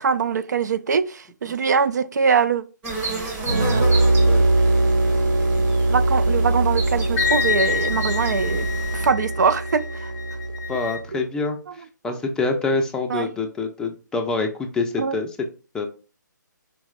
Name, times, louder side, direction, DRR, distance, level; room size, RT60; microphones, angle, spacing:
voice 1, 0.0-2.6 5.9-8.7 8.9-10.1 11.1-11.2 13.1-13.3 15.0-15.2, right 6 dB, 65° right, 0.4 m, -22 dB
sound 1, 2.8-9.1, right 2 dB, 20° right, 1.3 m, -32 dB
sound 2, 3.4-11.0, right 2 dB, 80° right, 0.8 m, -21 dB
Wind instrument woodwind instrument, 7.2-11.0, left 7 dB, 65° left, 0.5 m, -28 dB
voice 2, 10.7-15.4 15.7-15.9, left 3 dB, 5° left, 0.5 m, -26 dB
4.6 x 3.0 x 3.8 m
figure-of-eight pair, 145°, 10 cm